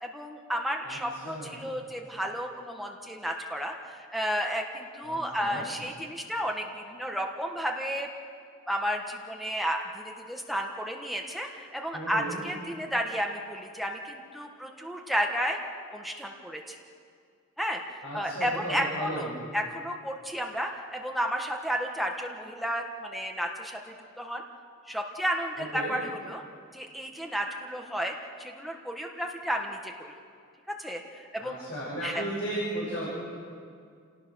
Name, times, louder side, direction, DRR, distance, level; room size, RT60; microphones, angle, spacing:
voice 1, 0.0-8.1 8.7-15.6 15.9-16.7 17.6-17.8 18.1-23.8 24.2-24.4 24.9-26.4 26.7-29.9 30.8-31.6 32.0-32.2, equal, ahead, 1 dB, 1.4 m, -32 dB
voice 2, 0.8-1.7 5.1-5.6 11.9-12.4 18.0-19.3 25.7-26.0 31.4-33.1, right 1 dB, 55° left, -6 dB, 6.8 m, -35 dB
29.5 x 18.5 x 6.3 m, 2.2 s
head